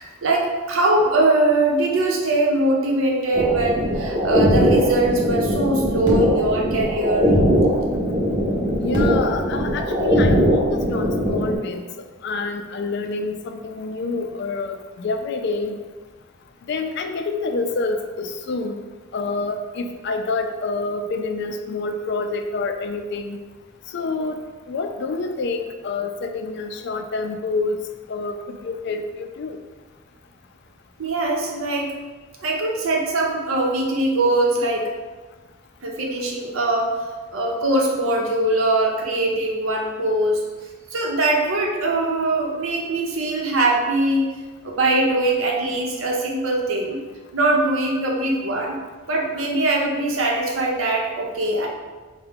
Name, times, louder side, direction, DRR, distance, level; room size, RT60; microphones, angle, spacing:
voice 1, 0.0-7.3 31.0-31.9 32.4-34.9 35.8-36.9 37.3-40.4 40.9-44.3 44.6-47.0 47.3-48.8 49.1-51.7, right 2 dB, 85° right, -1 dB, 0.7 m, -21 dB
sound 1, 3.3-11.6, equal, 25° right, 0.7 m, -20 dB
voice 2, 8.8-15.8 16.7-18.8 19.1-23.4 23.9-24.4 24.7-27.8 28.1-29.6, left 3 dB, 55° left, 6 dB, 0.4 m, -27 dB
4.6 x 2.2 x 3.5 m, 1.3 s
head